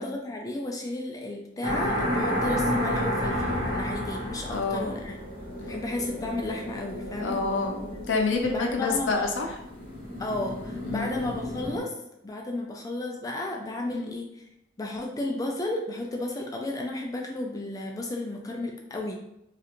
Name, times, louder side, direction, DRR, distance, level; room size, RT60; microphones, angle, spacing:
voice 1, 0.0-5.2 5.6-7.4 8.5-9.3 10.2-12.0 12.2-14.5 14.8-19.2, left 2 dB, 20° left, 1 dB, 0.3 m, -33 dB
sound 1, 1.6-11.8, equal, 30° right, 1.3 m, -31 dB
sound 2, 3.2-6.4, left 1 dB, 65° right, 1.1 m, -43 dB
voice 2, 4.5-4.9 7.2-9.6 10.8-11.3 13.9-14.1, left 3 dB, 80° left, 2 dB, 0.6 m, -28 dB
3.2 x 2.5 x 2.9 m, 0.83 s
head